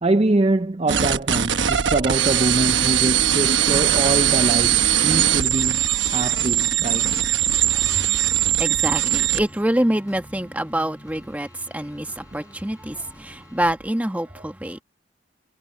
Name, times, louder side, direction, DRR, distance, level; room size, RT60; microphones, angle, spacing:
voice 1, 0.0-5.8 6.1-7.1, right 2 dB, 30° right, 0.5 m, -24 dB
sound 1, 0.9-9.4, right 11 dB, 65° right, 1.2 m, -20 dB
sound 2, 3.7-9.2 9.7-9.8, left 4 dB, 45° left, 1.7 m, -40 dB
sound 3, 7.6-13.7, equal, 15° left, 4.4 m, -47 dB
voice 2, 7.7-14.8, right 1 dB, 5° right, 1.2 m, -26 dB
head